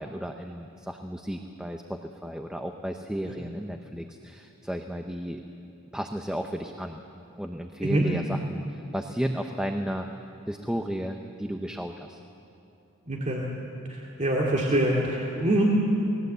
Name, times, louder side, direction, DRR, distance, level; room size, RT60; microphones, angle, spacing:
voice 1, 0.0-5.4 5.9-7.0 7.4-10.1 10.5-12.2, equal, 5° right, 4 dB, 0.9 m, -33 dB
voice 2, 13.1-13.5 13.9-15.6, right 1 dB, 35° right, -3 dB, 2.6 m, -25 dB
29.0 x 20.0 x 8.1 m, 2.9 s
head